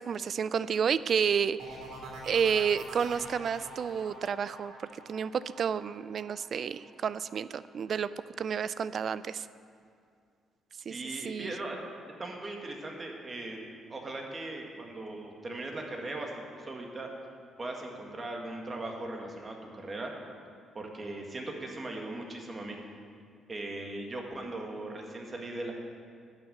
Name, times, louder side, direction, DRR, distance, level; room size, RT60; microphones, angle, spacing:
voice 1, 0.0-1.8 2.3-4.7 5.1-8.1 8.4-9.5 10.9-11.0 11.2-11.5, right 7 dB, 55° right, 16 dB, 0.3 m, -30 dB
sound 1, 1.6-7.2 7.6-8.1, right 3 dB, 85° right, 3.1 m, -46 dB
voice 2, 10.9-11.8 12.2-13.6 13.9-17.1 17.6-20.1 20.7-22.8 23.5-25.7, right 2 dB, 30° right, 1 dB, 1.8 m, -39 dB
11.0 x 6.4 x 8.1 m, 2.3 s
cardioid pair, 90°, 0 cm